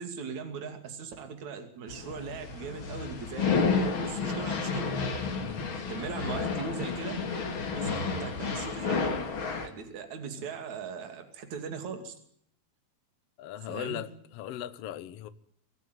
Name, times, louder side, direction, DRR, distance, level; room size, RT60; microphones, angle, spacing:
voice 1, 0.0-3.6 4.0-5.0 5.9-7.2 7.8-9.2 9.6-12.1 13.7-14.1, right 6 dB, 50° right, 3.8 m, -39 dB
sound 1, 1.9-9.7, left 5 dB, 40° left, 2.7 m, -31 dB
voice 2, 13.4-15.3, left 11 dB, 75° left, 1.4 m, -38 dB
24.5 x 14.0 x 9.3 m
omnidirectional pair, 4.3 m